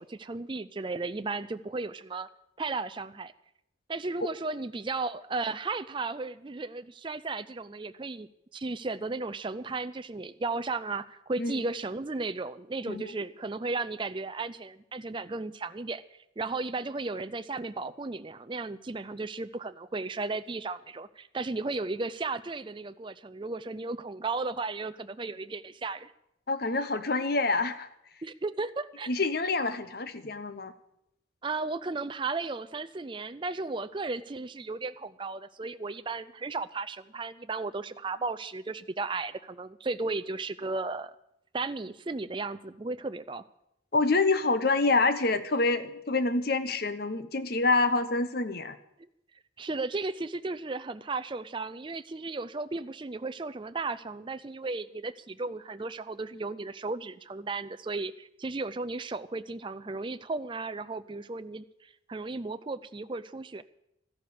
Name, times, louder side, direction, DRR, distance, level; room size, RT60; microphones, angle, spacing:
voice 1, 0.0-2.3 2.6-3.3 3.9-16.0 16.4-26.1 28.2-29.1 31.4-41.1 41.5-43.4 49.6-63.6, right 3 dB, 25° right, 12 dB, 0.4 m, -35 dB
voice 2, 26.5-27.9 29.1-30.7 43.9-48.8, left 3 dB, 50° left, 12 dB, 0.9 m, -27 dB
14.0 x 11.5 x 6.9 m, 0.79 s
head